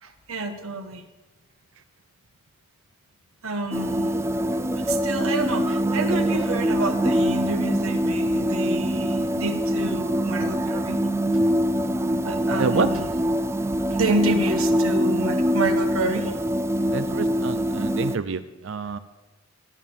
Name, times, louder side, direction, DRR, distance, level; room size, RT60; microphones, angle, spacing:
voice 1, 0.0-1.0 3.4-4.1 4.7-11.0 11.3-11.6 12.2-13.1 13.9-16.3, right 2 dB, 80° right, 5 dB, 1.5 m, -29 dB
sound 1, 3.7-18.2, equal, 10° right, 0.4 m, -24 dB
voice 2, 12.6-12.9 16.9-19.0, right 4 dB, 65° right, 11 dB, 0.5 m, -27 dB
14.0 x 11.0 x 7.1 m, 1.2 s
head